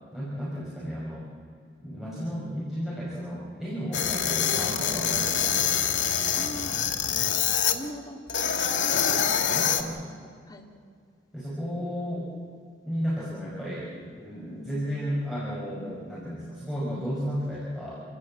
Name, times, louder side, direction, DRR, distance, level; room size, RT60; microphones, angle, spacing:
voice 1, 0.1-1.3 1.8-5.6 8.9-10.0 11.3-12.3 12.8-18.0, equal, ahead, -8 dB, 5.7 m, -33 dB
sound 1, 3.9-7.8 8.3-9.8, left 8 dB, 85° left, 2.1 m, -25 dB
voice 2, 6.3-8.5 10.2-10.7, equal, 20° left, 0 dB, 2.3 m, -42 dB
28.0 x 15.5 x 8.7 m, 2.1 s
head